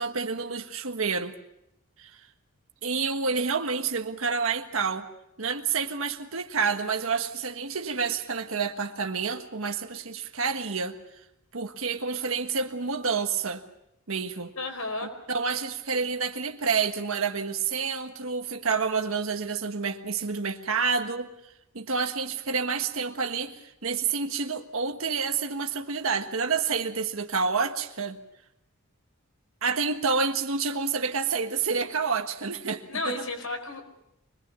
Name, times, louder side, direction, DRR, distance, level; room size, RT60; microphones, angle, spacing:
voice 1, 0.0-1.3 2.0-2.2 2.8-5.1 5.4-11.0 11.5-13.6 14.1-14.5 15.3-21.3 21.7-28.2 29.6-33.2, right 5 dB, 75° right, 6 dB, 1.5 m, -28 dB
voice 2, 14.5-15.1 32.9-33.8, left 2 dB, 80° left, 6 dB, 4.8 m, -32 dB
25.0 x 21.0 x 7.0 m, 0.83 s
head